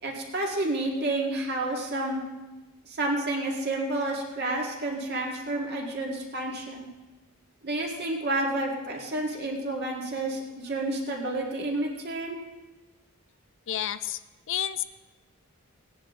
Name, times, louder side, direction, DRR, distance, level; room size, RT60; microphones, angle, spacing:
voice 1, 0.0-2.2 2.8-6.9 7.6-12.4, right 2 dB, 50° right, -1 dB, 2.1 m, -30 dB
voice 2, 13.7-14.2 14.5-14.8, left 11 dB, 60° left, 13 dB, 0.5 m, -30 dB
17.5 x 10.0 x 3.7 m, 1.1 s
head